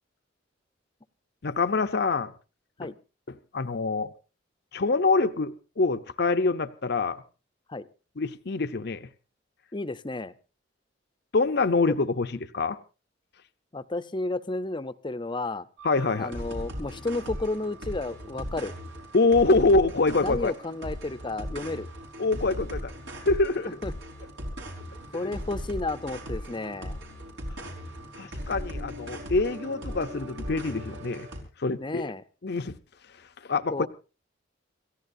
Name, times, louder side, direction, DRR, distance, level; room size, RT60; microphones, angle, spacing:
voice 1, 1.4-2.3 2.8-2.9 3.5-4.1 4.7-7.2 8.2-9.1 11.3-12.8 15.8-16.4 19.1-20.5 22.2-22.9 23.2-23.7 25.2-25.3 28.2-31.3 31.6-32.1 32.4-32.7 33.4-33.9, left 3 dB, 60° left, 0.7 m, -25 dB
voice 2, 9.7-10.3 11.9-12.0 13.7-15.7 16.2-18.7 20.2-21.9 23.8-23.9 25.1-27.0 31.8-32.2 33.7-33.9, left 2 dB, 25° left, 0.7 m, -32 dB
sound 1, 15.8-31.4, equal, 90° right, 5.3 m, -38 dB
28.5 x 15.0 x 2.7 m
head